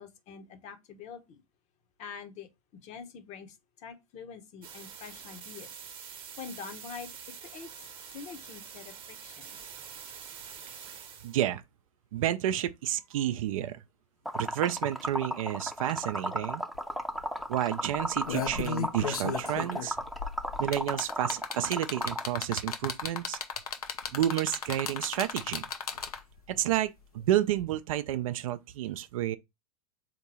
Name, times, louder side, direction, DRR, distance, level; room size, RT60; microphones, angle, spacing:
voice 1, 0.0-1.4 2.0-2.5 2.8-5.8 6.4-7.1 7.4-9.6, left 6 dB, 40° left, 0.9 m, -45 dB
sound 1, 4.6-11.4, right 7 dB, 30° right, 0.9 m, -46 dB
voice 2, 11.2-11.6 12.1-13.8 14.3-16.6 17.5-20.0 20.6-23.4 24.1-25.6 26.5-26.9 27.1-29.4, right 12 dB, 65° right, 0.5 m, -30 dB
Liquid, 14.3-22.2, equal, ahead, 0.6 m, -34 dB
sound 2, 16.7-16.8 17.1-17.4 18.0-26.4 27.6-27.7, left 7 dB, 80° left, 0.7 m, -35 dB
3.6 x 2.9 x 4.2 m
hypercardioid pair, 95°, 19 cm